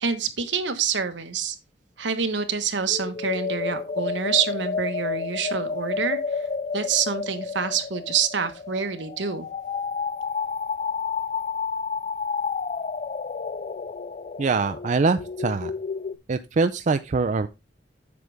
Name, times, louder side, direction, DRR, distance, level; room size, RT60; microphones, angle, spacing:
voice 1, 0.0-1.6 2.0-6.4 6.7-9.5, right 6 dB, 75° right, 1.2 m, -27 dB
sound 1, 2.9-16.2, left 5 dB, 40° left, 0.4 m, -30 dB
voice 2, 14.4-15.7 16.3-17.5, right 4 dB, 40° right, 0.4 m, -23 dB
8.3 x 6.4 x 3.4 m
head